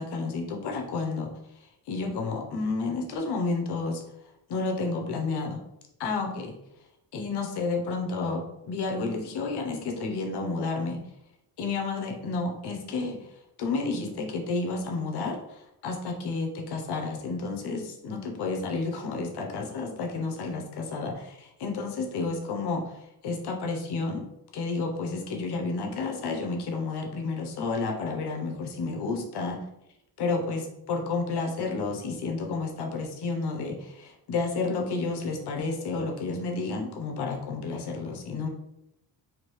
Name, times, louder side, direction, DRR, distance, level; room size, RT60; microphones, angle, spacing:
voice 1, 0.0-1.3 1.9-4.0 4.5-5.6 6.0-6.5 7.1-11.0 11.6-13.2 13.6-24.2 24.5-29.7 30.2-38.5, left 3 dB, 90° left, 2 dB, 0.9 m, -31 dB
5.0 x 2.7 x 3.1 m, 0.84 s
wide cardioid pair, 150°, 39 cm